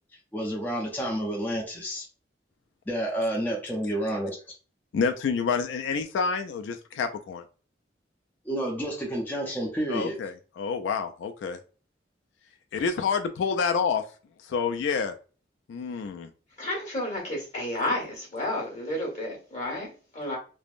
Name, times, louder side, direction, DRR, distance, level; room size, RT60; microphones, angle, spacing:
voice 1, 0.3-2.1 2.9-4.4 8.5-10.2, right 1 dB, 10° left, 0.5 m, -29 dB
voice 2, 4.9-7.4 9.9-11.6 12.7-14.1 14.4-15.1 15.7-16.3, left 5 dB, 85° left, 0.3 m, -28 dB
voice 3, 16.6-20.4, left 1 dB, 40° left, 1.3 m, -31 dB
3.3 x 2.1 x 2.4 m
head